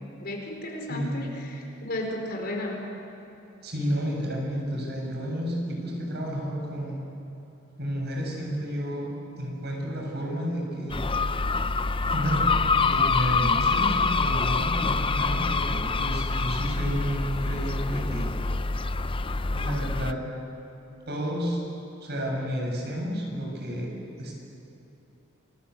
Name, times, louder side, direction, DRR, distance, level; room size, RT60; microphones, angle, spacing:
voice 1, 0.2-2.9, left 1 dB, 55° left, 1 dB, 4.9 m, -34 dB
voice 2, 3.6-7.0 7.8-9.1 9.4-11.0 12.1-18.3 19.5-20.2 21.1-21.6 22.0-23.9 24.2-24.3, equal, 55° right, 0 dB, 7.5 m, -31 dB
sound 1, 10.9-20.1, left 4 dB, 25° left, 0.6 m, -26 dB
29.0 x 20.0 x 8.5 m, 3.0 s
head